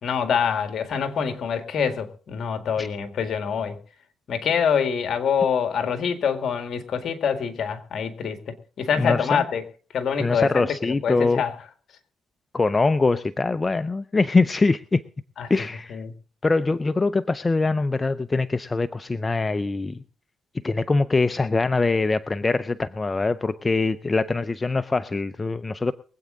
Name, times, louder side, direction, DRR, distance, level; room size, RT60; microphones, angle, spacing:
voice 1, 0.0-3.8 4.3-9.6 9.9-11.5 15.4-15.5 15.9-16.1, left 7 dB, 60° left, 8 dB, 1.9 m, -25 dB
voice 2, 8.9-9.4 10.2-11.4 12.5-15.0 15.5-16.0 16.4-20.0 20.6-25.9, left 3 dB, 25° left, 13 dB, 0.5 m, -23 dB
23.0 x 8.5 x 3.9 m, 0.41 s
cardioid pair, 90°, 0 cm